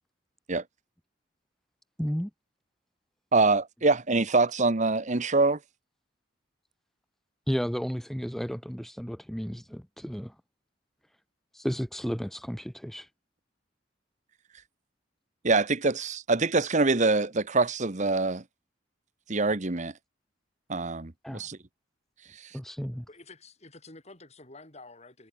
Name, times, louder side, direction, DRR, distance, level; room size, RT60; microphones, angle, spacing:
voice 1, 2.0-2.3 7.5-10.3 11.5-13.1 21.2-21.5 22.5-23.1, equal, ahead, 0.6 m, -33 dB
voice 2, 3.3-5.6 15.4-18.4 19.3-19.9 20.7-21.6 22.3-22.5, right 3 dB, 40° right, 1.2 m, -25 dB
voice 3, 23.1-25.3, left 2 dB, 35° left, 5.5 m, -49 dB
head